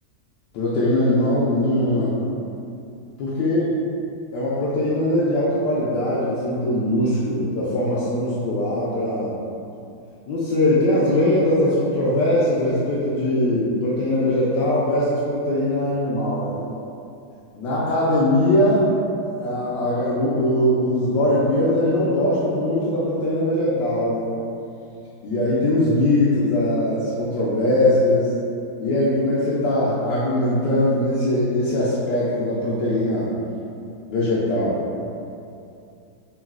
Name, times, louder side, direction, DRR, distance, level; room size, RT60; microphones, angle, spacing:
voice 1, 0.5-2.1 3.2-3.7 4.3-9.3 10.3-16.7 17.5-18.9 19.2-24.3 25.2-28.3 28.8-33.3 34.1-34.8, left 1 dB, 75° left, -9 dB, 1.2 m, -21 dB
3.8 x 2.3 x 2.3 m, 2.6 s
omnidirectional pair, 2.0 m